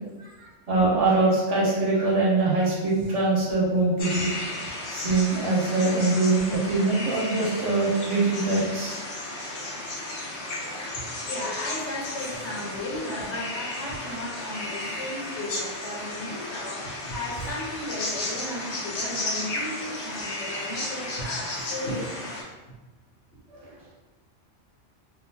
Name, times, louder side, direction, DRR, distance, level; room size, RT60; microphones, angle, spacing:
voice 1, 0.2-4.6 4.9-9.0 10.6-11.0 23.5-23.9, right 3 dB, 80° right, -5 dB, 1.3 m, -24 dB
sound 1, 4.0-22.4, left 2 dB, 55° left, 0.8 m, -34 dB
voice 2, 10.9-22.4, left 1 dB, 70° left, -4 dB, 1.1 m, -35 dB
2.9 x 2.5 x 2.6 m, 1.2 s
omnidirectional pair, 1.2 m